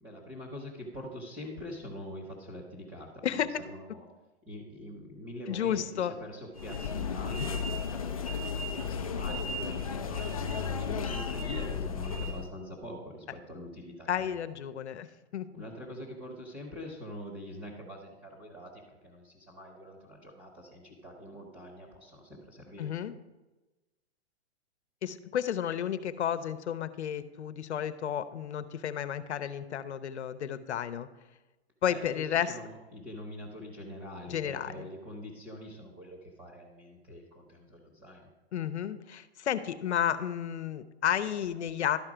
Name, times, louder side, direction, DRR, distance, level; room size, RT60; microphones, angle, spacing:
voice 1, 0.0-3.2 3.6-4.1 4.5-10.5 10.8-14.4 15.5-22.9 31.9-38.3, equal, 15° right, -2 dB, 1.0 m, -44 dB
voice 2, 5.5-6.2 14.1-15.1 15.3-15.6 22.8-23.2 25.0-31.1 31.8-32.6 34.3-34.9 38.5-42.0, left 9 dB, 85° left, 12 dB, 0.7 m, -32 dB
sound 1, 6.6-12.5, left 5 dB, 35° left, 0.4 m, -34 dB
12.0 x 4.5 x 5.0 m, 1.1 s
hypercardioid pair, 170°, 33 cm